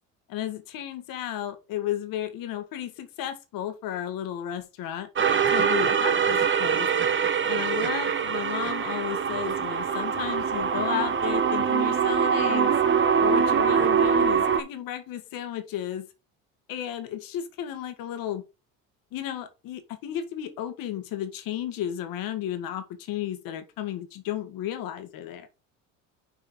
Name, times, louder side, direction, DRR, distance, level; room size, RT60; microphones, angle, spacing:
voice 1, 0.3-5.1 5.5-6.9 7.5-12.7 13.2-16.1 16.7-18.4 19.1-25.5, left 11 dB, 65° left, 1.7 m, -33 dB
sound 1, 5.2-14.6, right 7 dB, 30° right, 1.2 m, -23 dB
6.3 x 4.4 x 5.1 m
supercardioid pair, 75°, 37 cm